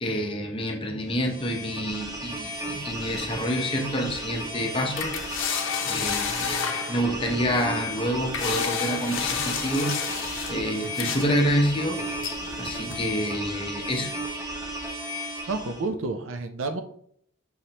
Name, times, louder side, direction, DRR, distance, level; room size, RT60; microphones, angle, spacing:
voice 1, 0.0-5.1 5.8-9.9 10.5-12.0 12.6-14.1, equal, 25° left, 2 dB, 0.7 m, -28 dB
sound 1, 1.1-15.9, equal, 15° right, 0.9 m, -34 dB
sound 2, 2.5-13.1, left 7 dB, 70° left, 0.6 m, -33 dB
voice 2, 15.5-16.8, right 3 dB, 70° right, 7 dB, 0.5 m, -30 dB
5.5 x 3.2 x 2.8 m, 0.64 s
head